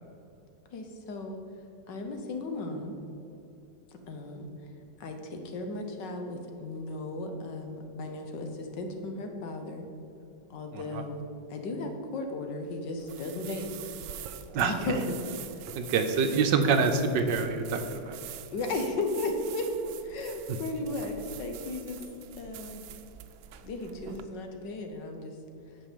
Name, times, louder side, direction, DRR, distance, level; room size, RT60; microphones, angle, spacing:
voice 1, 0.7-1.4 1.9-3.0 3.9-4.5 5.0-9.9 10.5-11.2 11.5-13.7 14.2-14.3 14.6-15.2 15.5-15.6 18.5-22.0 22.4-22.8 23.6-25.3, left 2 dB, 65° left, 4 dB, 1.6 m, -35 dB
sound 1, 13.0-24.2, right 10 dB, 85° right, 1.4 m, -45 dB
voice 2, 15.8-18.2, right 5 dB, 70° right, 7 dB, 1.3 m, -26 dB
8.9 x 6.2 x 6.7 m, 2.8 s
omnidirectional pair, 2.1 m